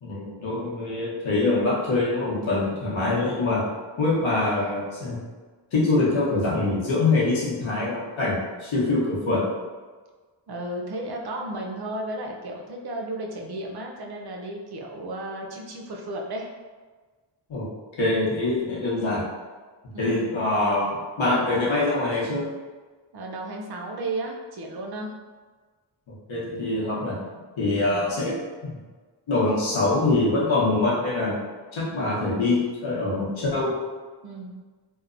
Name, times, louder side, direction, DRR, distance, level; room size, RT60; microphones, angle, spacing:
voice 1, 0.0-3.7 4.0-5.2 5.7-9.4 17.5-17.7 18.0-19.3 20.0-22.5 26.1-27.2 27.6-28.4 28.6-28.8 29.3-31.4 31.7-33.7, left 2 dB, 90° left, -6 dB, 0.9 m, -24 dB
voice 2, 10.5-16.5 19.9-20.3 23.1-25.1 27.7-28.1 34.2-34.6, right 1 dB, 55° right, 0 dB, 0.6 m, -34 dB
2.9 x 2.1 x 2.5 m, 1.4 s
cardioid pair, 55°, 46 cm